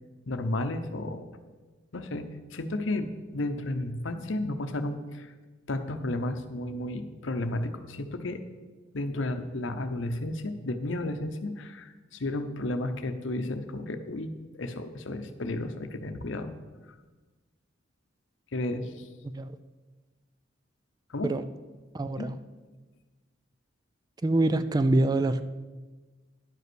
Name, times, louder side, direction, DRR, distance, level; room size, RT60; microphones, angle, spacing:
voice 1, 0.3-1.3 1.9-5.3 5.7-8.4 8.9-16.5 18.5-19.1 21.1-21.3 22.2-22.3, left 1 dB, 75° left, 8 dB, 0.8 m, -33 dB
voice 2, 21.9-22.4 24.2-25.4, right 2 dB, 20° right, 11 dB, 0.3 m, -25 dB
10.5 x 5.5 x 6.1 m, 1.3 s
head